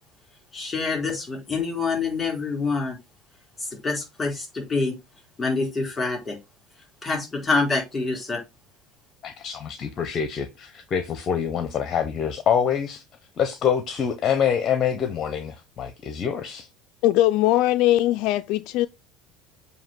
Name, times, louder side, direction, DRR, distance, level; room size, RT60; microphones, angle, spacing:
voice 1, 0.5-3.0 3.6-4.9 5.4-6.4 7.0-8.4, left 4 dB, 15° left, 4.2 m, -26 dB
voice 2, 9.2-13.0 13.4-16.7, left 8 dB, 35° left, 0.9 m, -25 dB
voice 3, 17.0-18.9, left 14 dB, 60° left, 0.3 m, -20 dB
7.3 x 2.8 x 5.9 m
supercardioid pair, 130°, 0 cm